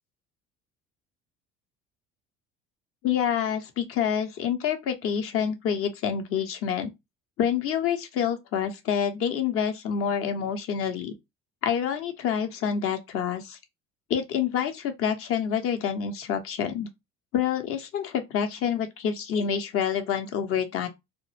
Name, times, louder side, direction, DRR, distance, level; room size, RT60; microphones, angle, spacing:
voice 1, 3.0-6.9 7.4-11.1 11.6-13.6 14.1-16.9 17.3-20.9, left 8 dB, 40° left, 0.6 m, -27 dB
2.1 x 2.0 x 3.1 m
figure-of-eight pair, 60°, 33 cm